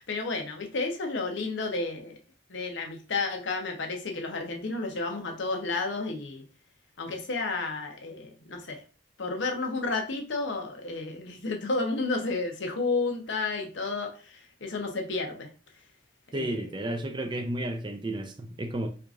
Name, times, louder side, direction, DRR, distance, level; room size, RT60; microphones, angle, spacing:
voice 1, 0.0-2.2 2.5-6.4 7.0-8.8 9.2-15.5 16.3-16.6, left 3 dB, 70° left, 0.7 m, -31 dB
voice 2, 16.3-18.9, right 1 dB, 25° right, 0.3 m, -32 dB
4.5 x 2.4 x 2.4 m
head